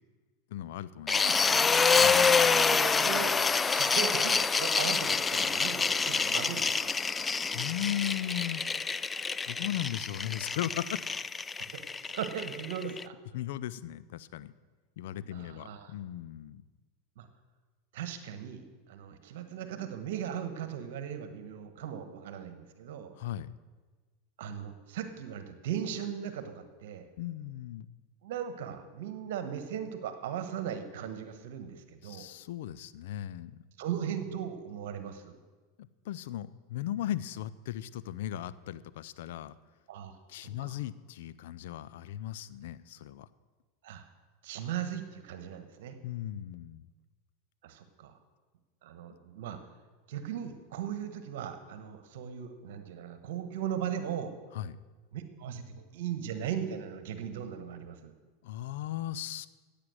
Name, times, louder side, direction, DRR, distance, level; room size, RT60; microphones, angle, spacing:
voice 1, 0.5-1.2 2.0-2.5 7.5-8.6 9.5-11.0 13.3-14.5 15.0-16.7 23.2-23.5 27.2-27.9 32.0-33.6 36.0-39.5 40.3-43.3 46.0-46.9 54.5-54.8 58.4-59.5, left 12 dB, 70° left, 16 dB, 0.5 m, -37 dB
sound 1, 1.1-13.0, left 5 dB, 20° left, 0.4 m, -27 dB
voice 2, 1.2-1.7 2.5-3.3 3.7-6.9 11.7-11.8 12.1-13.1 15.3-15.9 17.2-17.3 17.9-23.1 24.4-27.1 28.2-32.3 33.8-35.4 39.9-40.7 43.8-44.0 44.4-46.0 47.6-48.2 48.8-49.6 50.1-54.3 55.1-58.1, right 9 dB, 70° right, 10 dB, 1.2 m, -38 dB
15.5 x 8.6 x 6.3 m, 1.3 s
hypercardioid pair, 90°, 0 cm